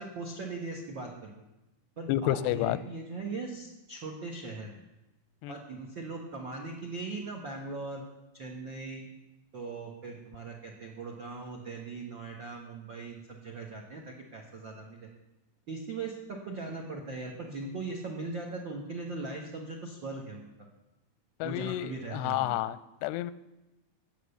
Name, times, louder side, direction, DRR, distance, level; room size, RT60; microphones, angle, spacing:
voice 1, 0.0-1.4 2.0-4.8 5.5-8.0 8.3-9.1 9.5-15.1 15.7-20.5 21.4-22.5, right 3 dB, 70° right, 2 dB, 1.1 m, -39 dB
voice 2, 2.1-2.8 5.4-5.6 21.4-23.3, left 14 dB, 90° left, 16 dB, 2.7 m, -30 dB
18.0 x 7.6 x 6.9 m, 0.97 s
omnidirectional pair, 4.7 m